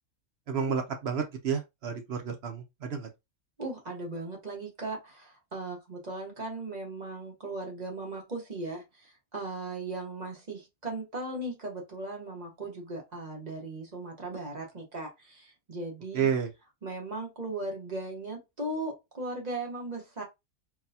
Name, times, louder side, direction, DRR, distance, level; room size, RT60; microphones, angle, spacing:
voice 1, 0.5-3.1 16.1-16.5, right 7 dB, 60° right, 0.7 m, -30 dB
voice 2, 3.6-16.3 16.8-20.2, right 2 dB, 35° right, 1.0 m, -38 dB
4.0 x 2.1 x 2.7 m
omnidirectional pair, 1.5 m